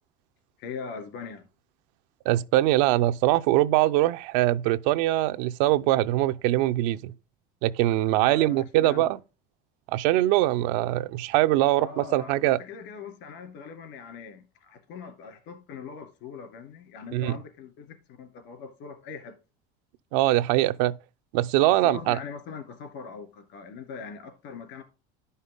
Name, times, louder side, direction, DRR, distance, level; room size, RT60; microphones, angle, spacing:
voice 1, 0.6-1.4 8.1-9.1 11.7-19.4 21.7-24.8, left 5 dB, 65° left, 2.8 m, -41 dB
voice 2, 2.3-7.1 7.6-9.2 9.9-12.6 17.1-17.3 20.1-21.0 21.3-22.2, right 16 dB, 80° right, 0.6 m, -22 dB
11.0 x 5.6 x 3.5 m
cardioid pair, 130°, 21 cm